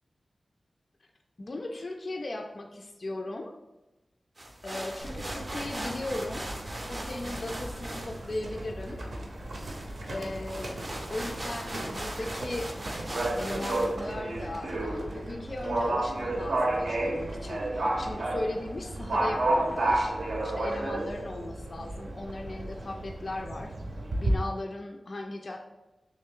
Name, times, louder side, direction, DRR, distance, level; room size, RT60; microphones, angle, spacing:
voice 1, 1.4-3.5 4.6-6.5 6.8-9.0 10.1-10.8 11.1-12.7 13.4-20.1 20.4-23.7 24.2-25.7, left 2 dB, 45° left, 3 dB, 0.3 m, -37 dB
sound 1, 4.4-13.9, right 1 dB, 30° right, 0.5 m, -40 dB
Livestock farm animals working animals, 5.0-24.3, right 1 dB, 75° right, 0.6 m, -32 dB
3.2 x 3.0 x 3.6 m, 1.0 s
wide cardioid pair, 110°, 0 cm